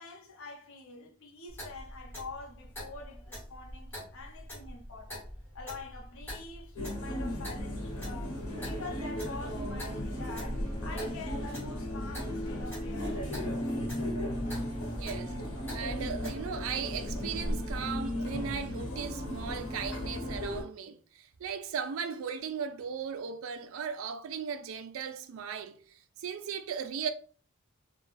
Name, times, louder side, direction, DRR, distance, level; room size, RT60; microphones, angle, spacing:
voice 1, 0.0-5.3 5.5-13.3, left 3 dB, 60° left, 0.5 m, -46 dB
Clock, 1.5-16.4, equal, 10° left, 1.2 m, -46 dB
sound 1, 6.8-20.6, equal, 85° left, 0.8 m, -35 dB
voice 2, 14.9-15.4 15.7-25.8 26.2-27.1, right 6 dB, 60° right, 0.3 m, -37 dB
2.3 x 2.2 x 3.1 m
head